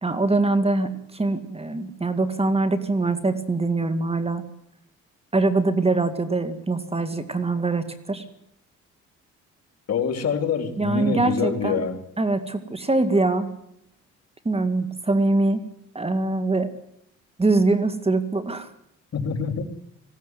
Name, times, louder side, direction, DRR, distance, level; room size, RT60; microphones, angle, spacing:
voice 1, 0.0-4.4 5.3-8.2 10.8-11.8 12.2-13.5 14.4-15.6 15.9-16.7 17.4-18.7, right 3 dB, 20° right, 10 dB, 2.2 m, -23 dB
voice 2, 9.9-12.0 19.1-19.6, left 6 dB, 55° left, 7 dB, 3.0 m, -25 dB
20.0 x 16.5 x 9.4 m, 0.76 s
cardioid pair, 90°, 30 cm